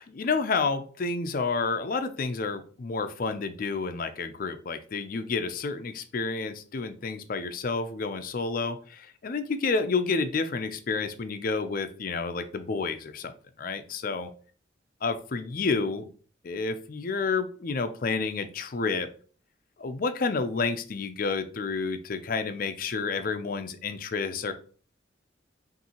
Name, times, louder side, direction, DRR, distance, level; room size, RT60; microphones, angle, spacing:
voice 1, 0.0-13.3 13.6-14.3 15.0-16.1 16.4-19.1 19.8-24.5, left 4 dB, 45° left, 9 dB, 0.4 m, -30 dB
5.4 x 2.6 x 2.9 m, 0.42 s
head